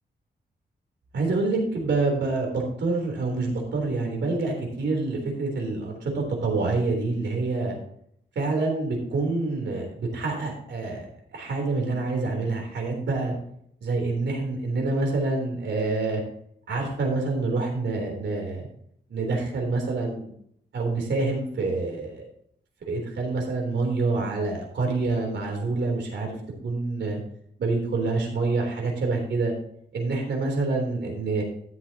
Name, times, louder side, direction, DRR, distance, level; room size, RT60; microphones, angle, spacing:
voice 1, 1.1-7.8 8.4-13.3 13.8-16.2 16.7-18.7 19.1-20.3 20.7-22.3 22.8-26.3 26.6-27.2 27.6-29.5 29.9-31.4, right 3 dB, 80° right, 1 dB, 3.6 m, -27 dB
13.0 x 7.9 x 2.9 m, 0.68 s
wide cardioid pair, 165°, 18 cm